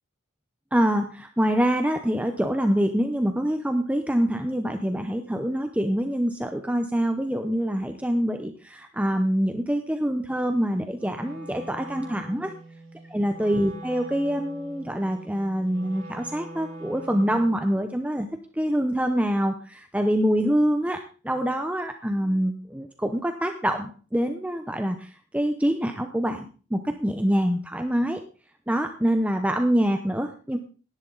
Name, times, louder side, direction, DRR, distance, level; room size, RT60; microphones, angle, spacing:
voice 1, 0.7-12.5 13.1-18.3 18.6-26.5 26.7-28.2 28.7-30.6, equal, 5° right, 6 dB, 0.8 m, -25 dB
Wind instrument woodwind instrument, 10.9-17.7, right 1 dB, 60° right, 3.5 m, -43 dB
17.5 x 11.0 x 4.0 m, 0.39 s
head